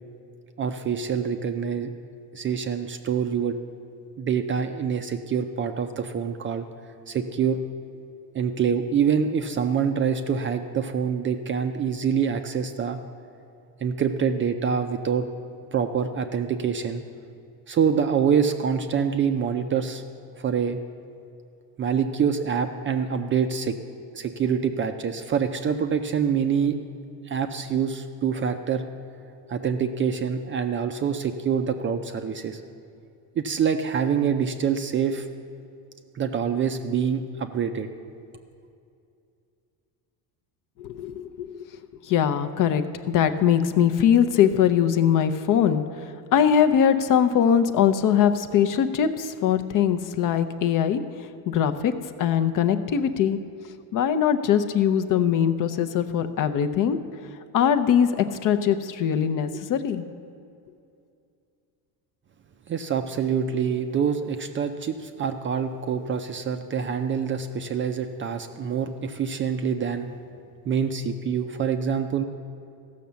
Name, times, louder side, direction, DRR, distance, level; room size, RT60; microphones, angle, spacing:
voice 1, 0.6-1.9 2.3-3.6 4.2-6.7 7.1-7.6 8.3-13.0 13.8-15.3 15.7-17.0 17.7-20.0 20.4-20.8 21.8-23.8 24.1-26.8 27.3-28.9 29.5-32.6 33.4-35.3 36.1-37.9 62.7-70.1 70.7-72.2, right 7 dB, 30° right, 7 dB, 0.4 m, -25 dB
voice 2, 40.8-41.7 42.0-51.0 51.5-51.9 52.2-53.4 53.9-57.0 57.5-60.0, left 8 dB, 45° left, 10 dB, 0.6 m, -21 dB
15.0 x 6.4 x 6.9 m, 2.5 s
cardioid pair, 140°, 43 cm